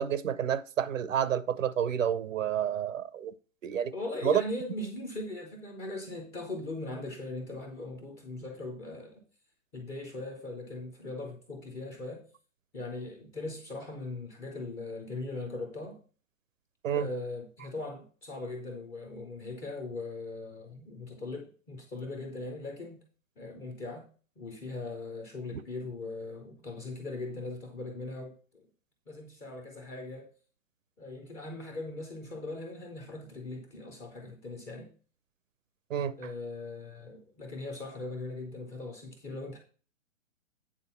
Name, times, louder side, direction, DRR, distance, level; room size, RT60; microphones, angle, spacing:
voice 1, 0.0-3.3 3.6-3.9 4.2-4.4 16.8-17.1 35.9-36.2, right 9 dB, 75° right, 0.8 m, -29 dB
voice 2, 3.9-9.2 9.7-12.2 12.7-16.0 16.9-23.0 23.4-24.1 24.4-28.6 29.1-30.3 31.0-34.9 36.2-39.6, left 2 dB, 5° left, 0.4 m, -40 dB
8.8 x 3.8 x 5.5 m
hypercardioid pair, 130°, 39 cm